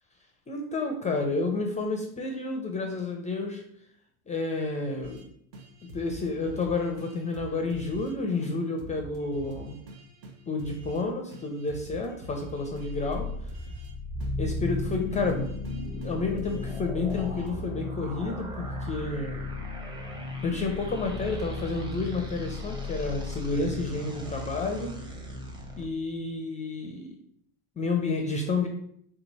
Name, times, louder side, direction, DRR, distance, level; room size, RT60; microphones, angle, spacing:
voice 1, 0.5-3.6 4.3-5.3 5.9-9.8 10.5-13.3 14.4-15.5 16.0-19.4 20.4-24.9 25.8-27.2 27.8-28.7, left 3 dB, 15° left, 3 dB, 0.5 m, -30 dB
sound 1, 5.0-5.3 5.5-8.1 8.4-8.5 8.8-11.0 11.3-13.9 14.2-16.8 17.1-17.6, right 2 dB, 65° right, 1.1 m, -45 dB
sound 2, 12.6-25.8, left 2 dB, 10° right, 0.8 m, -35 dB
3.7 x 2.9 x 4.0 m, 0.67 s
hypercardioid pair, 100°, 43 cm